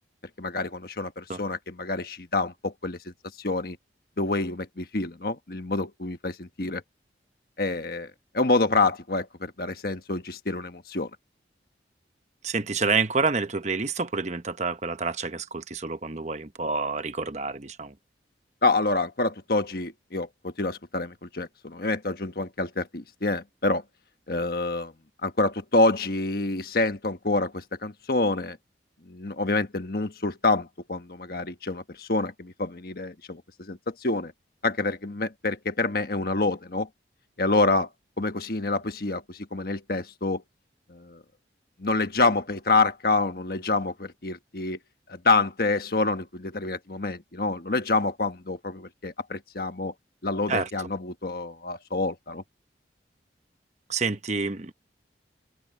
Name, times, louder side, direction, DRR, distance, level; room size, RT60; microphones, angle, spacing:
voice 1, 0.4-3.0 3.4-3.8 4.2-6.8 7.6-8.1 8.3-11.1 18.6-23.8 24.3-24.9 25.2-28.6 29.1-34.3 34.6-36.9 37.4-37.9 38.2-40.4 40.9-41.2 41.8-44.8 45.1-49.9 50.2-52.4, left 3 dB, 55° left, 1.3 m, -27 dB
voice 2, 12.4-17.9 50.5-50.7 53.9-54.7, right 4 dB, 40° right, 1.0 m, -28 dB
head